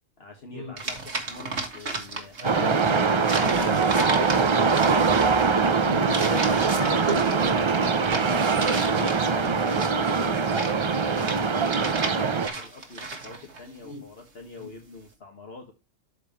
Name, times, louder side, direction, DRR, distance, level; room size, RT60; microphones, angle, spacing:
voice 1, 0.2-4.4 7.2-15.7, left 3 dB, 50° left, 1.7 m, -44 dB
sound 1, 0.8-2.5 2.8-13.6, right 3 dB, 60° right, 2.1 m, -34 dB
voice 2, 2.4-2.9 3.6-3.8 5.6-7.5 8.9-9.5 13.8-14.0 14.6-14.7, right 1 dB, 25° right, 3.9 m, -34 dB
sound 2, 2.4-12.5, right 5 dB, 40° right, 0.4 m, -23 dB
13.0 x 4.8 x 3.0 m
omnidirectional pair, 1.3 m